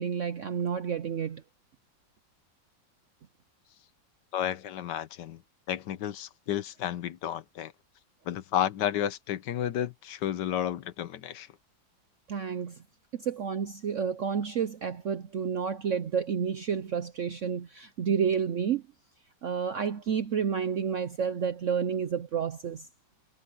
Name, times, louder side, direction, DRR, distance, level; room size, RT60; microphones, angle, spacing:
voice 1, 0.0-1.4 12.3-12.8 13.1-18.8 19.4-22.9, right 7 dB, 60° right, 0.8 m, -30 dB
voice 2, 4.3-5.4 5.7-7.7 8.3-11.5, left 10 dB, 70° left, 1.4 m, -32 dB
omnidirectional pair, 2.0 m